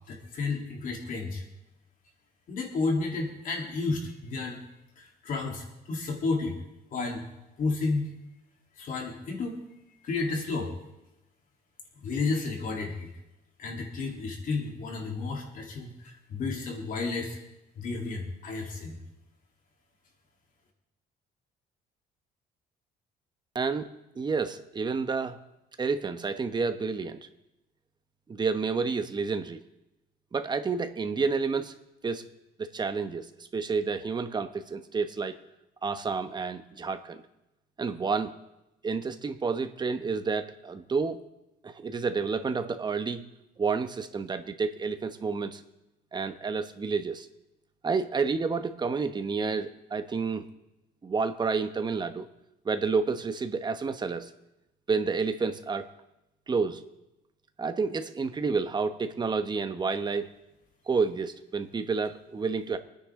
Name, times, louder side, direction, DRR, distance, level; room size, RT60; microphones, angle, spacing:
voice 1, 0.1-1.4 2.5-4.6 5.0-6.6 6.9-7.2 7.6-8.1 8.8-9.6 10.0-10.7 12.0-13.1 13.6-17.4 17.7-19.0, left 3 dB, 55° left, 0 dB, 3.5 m, -32 dB
voice 2, 23.5-25.4 25.8-27.2 28.3-29.6 30.3-31.8 32.0-32.2 32.6-35.4 35.8-37.2 37.8-38.3 38.8-41.2 41.6-43.2 43.6-45.6 46.1-47.3 47.8-50.5 51.0-52.3 52.6-54.3 54.9-55.9 56.5-56.8 57.6-60.4 60.9-62.8, right 4 dB, 25° right, 9 dB, 1.2 m, -30 dB
26.5 x 9.9 x 3.8 m, 0.93 s
cardioid pair, 110°, 17 cm